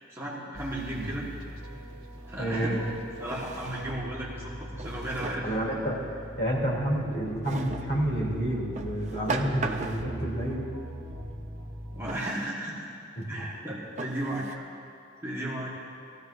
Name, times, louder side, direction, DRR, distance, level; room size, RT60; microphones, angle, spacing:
voice 1, 0.1-1.3 2.3-2.8 3.2-5.8 11.9-12.9 13.3-14.6 15.2-15.7, right 1 dB, 15° right, -6 dB, 1.6 m, -35 dB
sound 1, 0.5-12.0, equal, 90° right, 1.4 m, -41 dB
Drawer open or close, 1.9-2.0 3.2-4.1 4.8-5.6 7.4-7.9 8.8-10.2 12.1-12.5 13.2-13.3 14.0-14.5, right 3 dB, 35° right, 0.7 m, -37 dB
voice 2, 2.4-2.8 5.4-6.1 6.4-10.7 13.2-13.6, right 1 dB, 55° left, -5 dB, 3.2 m, -29 dB
19.0 x 14.5 x 2.7 m, 2.4 s
head